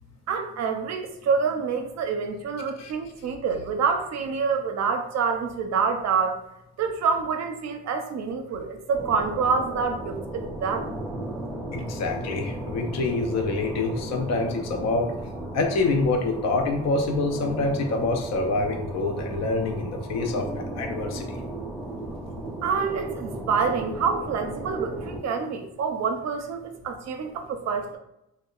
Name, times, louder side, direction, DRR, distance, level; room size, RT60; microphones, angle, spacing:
voice 1, 0.3-6.4 6.8-10.9 22.6-28.0, right 5 dB, 60° right, 5 dB, 0.5 m, -27 dB
sound 1, 8.9-25.2, right 1 dB, 10° right, 0.6 m, -35 dB
voice 2, 11.7-15.1 15.5-21.4, left 3 dB, 60° left, 4 dB, 0.5 m, -26 dB
2.7 x 2.1 x 2.3 m, 0.83 s
cardioid pair, 90°, 30 cm